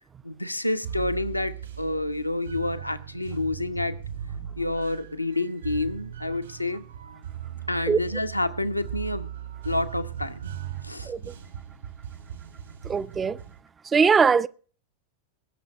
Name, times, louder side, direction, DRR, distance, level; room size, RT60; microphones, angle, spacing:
voice 1, 0.2-4.0 4.5-6.8 7.7-9.3 9.6-10.4 10.8-11.1, left 2 dB, 85° left, 0.9 m, -28 dB
sound 1, 0.8-13.6, right 10 dB, 70° right, 2.5 m, -38 dB
voice 2, 12.8-13.4 13.9-14.5, right 5 dB, 20° right, 0.5 m, -21 dB
20.5 x 6.9 x 5.1 m
figure-of-eight pair, 90°, 0 cm